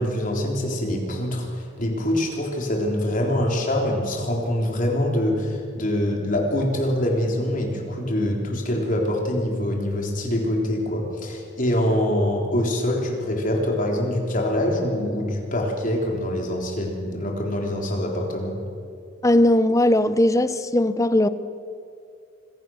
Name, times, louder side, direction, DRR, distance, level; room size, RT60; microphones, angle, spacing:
voice 1, 0.0-18.6, left 1 dB, 45° left, 0 dB, 3.7 m, -24 dB
voice 2, 19.2-21.3, left 1 dB, 15° left, 13 dB, 0.7 m, -18 dB
25.5 x 16.5 x 6.4 m, 2.4 s
head